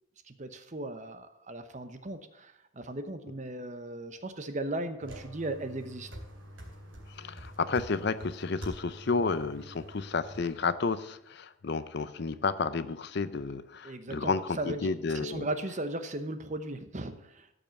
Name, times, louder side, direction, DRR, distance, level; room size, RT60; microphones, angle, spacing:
voice 1, 0.3-6.1 13.8-17.5, right 1 dB, 35° right, 9 dB, 0.9 m, -37 dB
sound 1, 5.0-10.5, equal, 80° right, 3.6 m, -46 dB
voice 2, 7.1-15.5, left 4 dB, 50° left, 14 dB, 0.5 m, -31 dB
13.5 x 5.3 x 7.0 m, 0.81 s
head